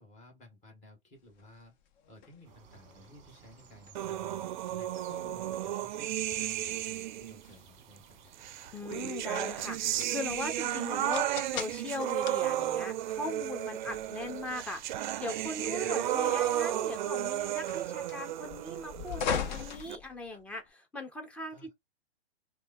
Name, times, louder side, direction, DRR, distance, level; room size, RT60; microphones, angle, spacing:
voice 1, 0.0-1.7 2.1-8.2 15.8-15.9 20.3-20.4 21.5-21.7, left 1 dB, 20° left, 2.0 m, -55 dB
sound 1, 1.3-20.7, left 7 dB, 45° left, 0.8 m, -43 dB
sound 2, 2.4-18.8, right 7 dB, 25° right, 1.0 m, -58 dB
sound 3, 3.9-7.4 8.4-20.0, right 12 dB, 50° right, 0.4 m, -33 dB
voice 2, 8.7-21.7, left 2 dB, 5° left, 0.6 m, -39 dB
4.6 x 2.3 x 2.6 m
hypercardioid pair, 135°, 32 cm